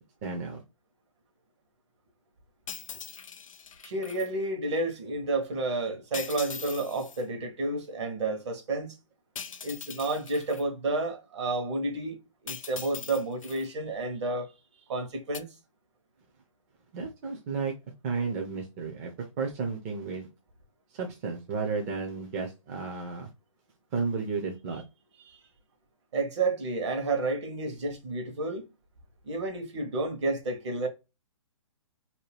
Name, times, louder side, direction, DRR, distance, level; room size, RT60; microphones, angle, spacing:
voice 1, 0.2-0.6 16.9-17.7 18.0-20.3 20.9-23.3 23.9-24.8, right 4 dB, 30° right, 0.5 m, -33 dB
sound 1, 2.7-4.3 6.1-7.2 9.4-10.6 12.5-13.7 15.3-15.4, left 7 dB, 85° left, 0.4 m, -41 dB
voice 2, 3.8-9.0 9.6-12.2 12.4-14.5 14.9-15.5 25.2-25.4 26.1-28.7 29.2-30.9, right 2 dB, 60° right, 1.0 m, -31 dB
2.7 x 2.1 x 3.2 m
hypercardioid pair, 140°, 17 cm